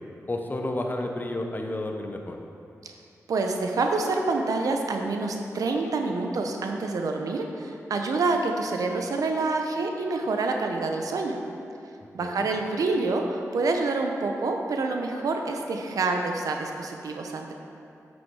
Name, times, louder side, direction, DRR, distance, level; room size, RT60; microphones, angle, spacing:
voice 1, 0.3-2.4 12.2-12.5, left 1 dB, 30° left, 3 dB, 1.0 m, -31 dB
voice 2, 3.3-11.4 12.1-17.5, right 3 dB, 85° right, 3 dB, 0.8 m, -27 dB
8.3 x 6.3 x 4.8 m, 2.7 s
cardioid pair, 60°, 6 cm